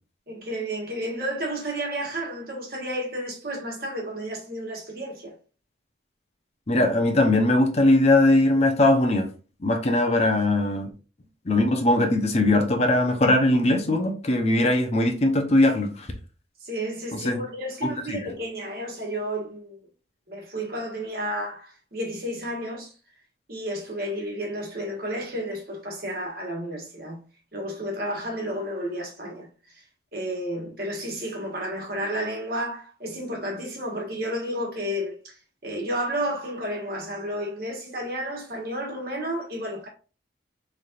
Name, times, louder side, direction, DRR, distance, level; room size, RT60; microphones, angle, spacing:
voice 1, 0.3-5.3 16.6-19.8 20.3-22.9 23.5-27.2 27.5-29.5 29.7-29.8 30.1-35.3 35.6-39.9, equal, 55° right, 1.4 m, -31 dB
voice 2, 6.7-9.3 9.6-10.9 11.5-16.1 17.1-17.4 17.8-18.2, left 1 dB, 35° left, 0.6 m, -20 dB
4.1 x 3.3 x 2.4 m
head